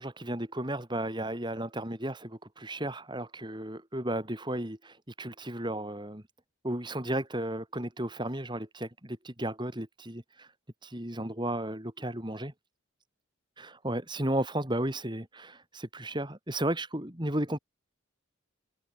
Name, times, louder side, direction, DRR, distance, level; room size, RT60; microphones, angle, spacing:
voice 1, 0.0-6.2 6.6-10.5 10.8-12.5 13.6-17.6, right 1 dB, 25° right, 4.3 m, -34 dB
head